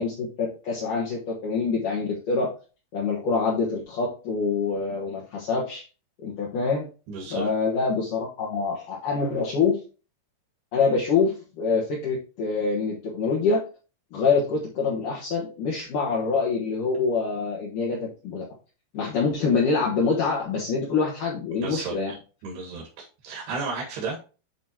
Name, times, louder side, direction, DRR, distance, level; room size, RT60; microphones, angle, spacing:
voice 1, 0.0-2.5 2.9-5.9 6.2-6.9 7.3-9.8 10.7-13.6 14.1-18.4 18.9-22.1, left 4 dB, 60° left, -5 dB, 2.6 m, -25 dB
voice 2, 7.1-7.5 21.5-22.2 22.4-24.2, right 4 dB, 70° right, -1 dB, 3.6 m, -33 dB
11.5 x 4.1 x 2.9 m, 0.34 s
omnidirectional pair, 5.0 m